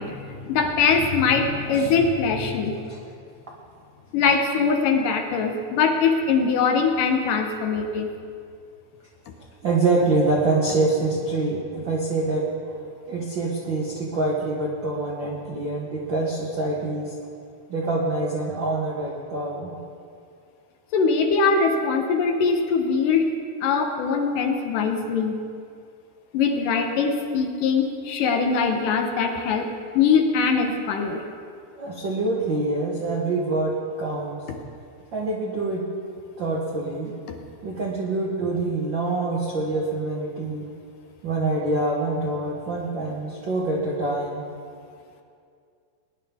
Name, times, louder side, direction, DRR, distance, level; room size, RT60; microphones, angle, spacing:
voice 1, 0.0-2.8 4.1-8.1 20.9-23.3 23.6-25.4 26.3-29.7 30.0-31.2 34.5-34.6, left 5 dB, 75° left, 4 dB, 2.3 m, -22 dB
voice 2, 2.7-3.0 9.6-12.5 13.1-17.1 17.7-19.8 31.8-34.5 35.1-35.9 36.4-37.1 37.6-40.7 41.2-44.5, right 2 dB, 70° right, -4 dB, 1.1 m, -25 dB
20.5 x 10.5 x 3.5 m, 2.3 s
omnidirectional pair, 4.2 m